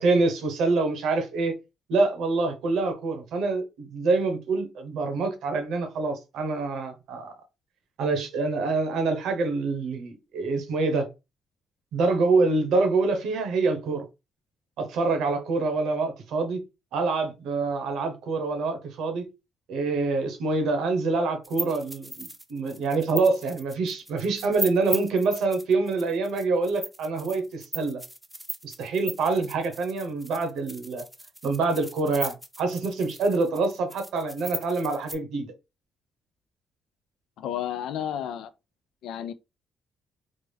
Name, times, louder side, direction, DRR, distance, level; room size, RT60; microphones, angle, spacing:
voice 1, 0.0-1.5 1.9-7.3 8.0-11.1 11.9-14.0 14.8-16.6 16.9-19.3 19.7-28.0 28.6-31.0 31.4-35.5, right 3 dB, 85° right, 0.9 m, -26 dB
sound 1, 21.4-35.2, equal, 5° right, 0.6 m, -38 dB
voice 2, 37.4-38.5 39.0-39.3, left 10 dB, 80° left, 0.4 m, -31 dB
3.3 x 2.0 x 3.4 m
cardioid pair, 90°, 0 cm